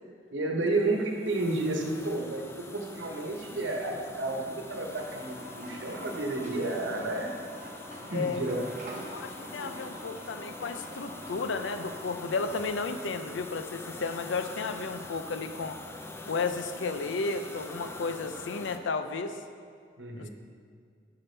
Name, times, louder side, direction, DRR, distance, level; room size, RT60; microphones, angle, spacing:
voice 1, 0.3-7.3 8.1-8.7 9.5-9.8 20.0-20.3, right 2 dB, 90° right, 2 dB, 1.1 m, -31 dB
sound 1, 0.7-18.8, left 2 dB, 15° left, 0.4 m, -44 dB
sound 2, 4.9-12.7, right 1 dB, 45° right, 1.0 m, -46 dB
voice 2, 8.1-8.4 9.1-15.8 16.3-19.4 20.1-20.3, left 4 dB, 90° left, 9 dB, 0.5 m, -33 dB
11.0 x 5.9 x 3.3 m, 2.1 s
head